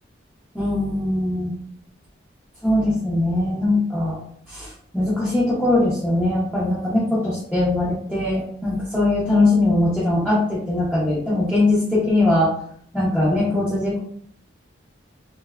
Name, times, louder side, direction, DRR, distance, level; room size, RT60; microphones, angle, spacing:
voice 1, 0.5-1.5 2.6-4.2 4.5-4.7 4.9-12.5 12.9-14.0, left 2 dB, ahead, -10 dB, 0.6 m, -21 dB
2.6 x 2.2 x 2.3 m, 0.63 s
head